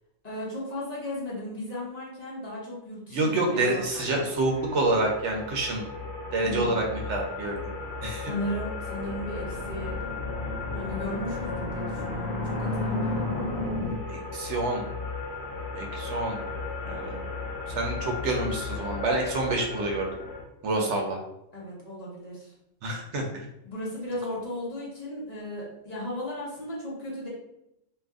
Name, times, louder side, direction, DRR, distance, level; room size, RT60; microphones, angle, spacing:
voice 1, 0.2-4.3 6.4-6.7 8.2-10.0 10.7-13.5 20.7-20.9 21.5-22.5 23.6-27.3, left 1 dB, 35° left, -6 dB, 1.0 m, -36 dB
voice 2, 3.1-5.8 6.3-6.8 7.1-7.7 8.0-8.3 14.1-14.9 15.7-16.4 16.9-17.2 17.8-20.1 20.6-21.2 22.8-23.4, right 2 dB, 70° right, 1 dB, 0.9 m, -27 dB
sound 1, 3.7-20.4, left 3 dB, 60° left, 1.4 m, -36 dB
sound 2, 9.0-13.9, left 2 dB, 85° left, 1.1 m, -32 dB
2.7 x 2.4 x 3.4 m, 0.83 s
omnidirectional pair, 1.3 m